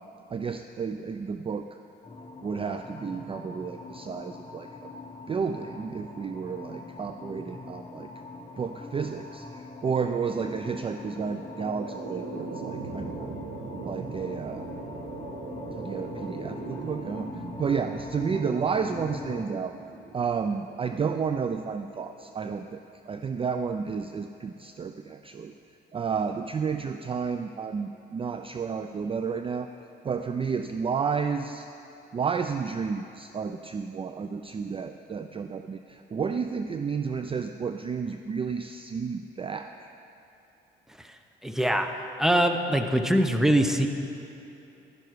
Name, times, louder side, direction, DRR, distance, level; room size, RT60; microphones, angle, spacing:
voice 1, 0.3-1.7 2.4-4.9 5.3-8.1 8.6-13.3 13.8-14.7 15.8-19.7 20.1-22.8 23.1-25.5 25.9-29.7 30.0-31.7 32.1-39.9, right 6 dB, 30° right, 8 dB, 0.4 m, -31 dB
sound 1, 2.0-19.4, left 3 dB, 30° left, 1.1 m, -42 dB
sound 2, 11.1-22.2, right 4 dB, 65° right, 1.1 m, -41 dB
voice 2, 41.4-41.9 42.2-43.9, right 1 dB, ahead, 6 dB, 0.7 m, -23 dB
11.5 x 10.5 x 4.7 m, 2.9 s
cardioid pair, 90°, 20 cm